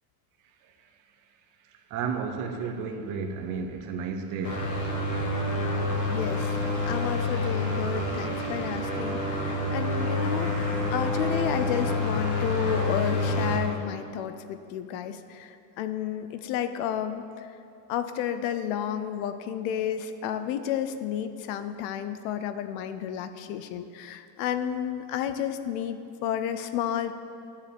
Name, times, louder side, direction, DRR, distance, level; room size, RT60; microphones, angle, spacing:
voice 1, 1.9-4.7, right 5 dB, 40° right, 0.9 m, -32 dB
sound 1, 4.4-13.6, left 2 dB, 35° left, 1.9 m, -28 dB
voice 2, 6.1-6.6 6.8-17.5 17.9-27.1, left 9 dB, 55° left, 0.7 m, -32 dB
12.5 x 7.3 x 6.9 m
cardioid pair, 175°, 49 cm